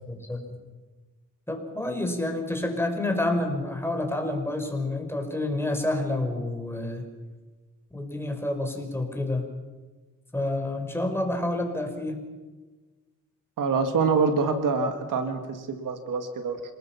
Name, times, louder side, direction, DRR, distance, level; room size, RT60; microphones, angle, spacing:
voice 1, 0.1-0.5 1.5-7.0 7.9-9.4 10.3-12.2, left 2 dB, 10° left, 4 dB, 4.9 m, -29 dB
voice 2, 13.6-16.6, right 4 dB, 90° right, 7 dB, 2.2 m, -25 dB
27.0 x 20.0 x 5.9 m, 1.3 s
cardioid pair, 80°, 31 cm